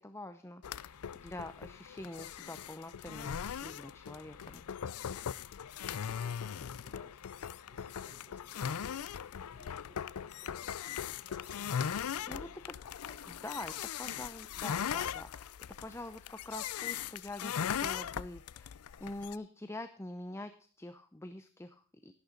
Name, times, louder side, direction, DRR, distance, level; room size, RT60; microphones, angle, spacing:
voice 1, 0.0-4.6 12.3-12.8 13.3-15.5 15.8-18.7 19.0-22.1, left 2 dB, 10° left, 9 dB, 0.6 m, -45 dB
sound 1, 0.6-19.4, left 8 dB, 90° left, 0.5 m, -39 dB
voice 2, 5.0-5.3 5.8-7.2 7.6-12.3 13.0-13.5, equal, 30° left, -2 dB, 6.3 m, -61 dB
12.0 x 11.5 x 3.9 m, 0.42 s
head